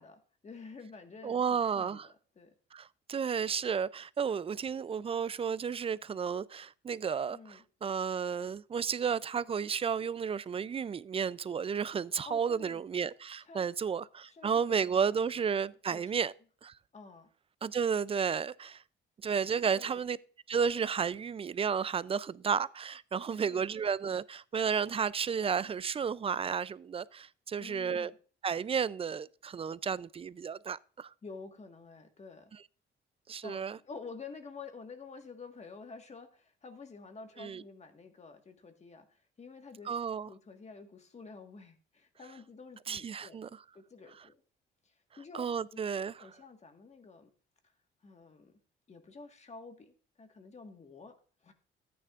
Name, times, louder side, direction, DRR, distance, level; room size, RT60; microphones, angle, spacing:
voice 1, 0.0-2.5 7.3-7.6 12.2-12.8 13.4-13.7 14.2-16.2 16.9-17.3 19.7-20.0 23.3-23.9 27.6-28.2 31.2-32.5 33.4-39.9 40.2-43.4 43.7-44.4 44.8-45.8 46.2-47.3 48.0-48.5 48.9-51.2 51.4-51.5, left 4 dB, 35° left, 1.6 m, -50 dB
voice 2, 1.2-2.1 2.7-16.3 16.6-16.7 17.6-18.8 19.2-20.2 20.5-28.1 28.4-31.1 33.3-33.8 37.4-37.6 39.9-40.3 42.9-43.5 45.3-46.1, right 6 dB, 30° right, 0.4 m, -32 dB
14.0 x 9.4 x 2.5 m
cardioid pair, 90°, 20 cm